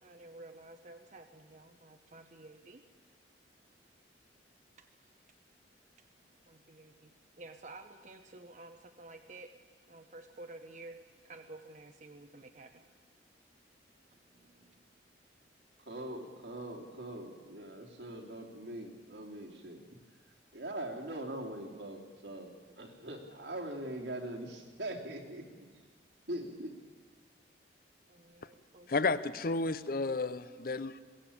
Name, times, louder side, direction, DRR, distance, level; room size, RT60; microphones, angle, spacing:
voice 1, 0.0-2.8 4.8-5.2 6.0-6.1 6.4-9.5 9.9-12.8 14.1-14.9 28.1-29.1, right 2 dB, 45° right, 0.9 m, -52 dB
voice 2, 15.8-20.0 20.5-22.5 22.8-25.6 26.3-26.8, right 1 dB, 75° right, 3.2 m, -42 dB
voice 3, 28.9-31.0, left 3 dB, 55° left, 0.7 m, -32 dB
21.5 x 16.5 x 8.7 m
head